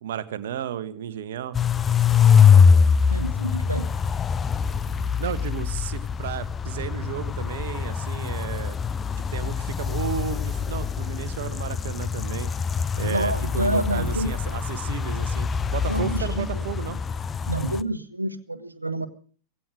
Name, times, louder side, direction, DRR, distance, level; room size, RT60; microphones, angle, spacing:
voice 1, 0.0-1.6 5.2-8.8 9.3-12.5 13.0-17.0, right 10 dB, 60° right, 1.7 m, -33 dB
sound 1, 1.5-17.8, left 6 dB, 20° left, 0.8 m, -23 dB
voice 2, 3.1-3.9 13.0-14.3 15.9-16.6 17.5-19.1, right 1 dB, 85° right, 1.5 m, -28 dB
17.5 x 16.5 x 5.0 m
figure-of-eight pair, 90°, 0 cm